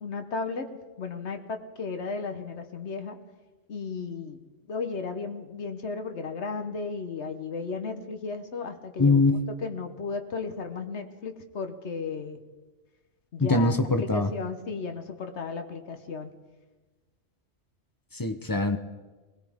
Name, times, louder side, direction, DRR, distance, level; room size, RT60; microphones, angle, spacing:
voice 1, 0.0-3.2 3.7-4.4 4.7-12.4 13.3-16.3, left 4 dB, 70° left, 6 dB, 1.4 m, -35 dB
voice 2, 9.0-9.4 13.4-14.3 18.1-18.8, left 3 dB, 20° left, 8 dB, 0.6 m, -23 dB
20.5 x 18.5 x 3.6 m, 1.2 s
omnidirectional pair, 1.2 m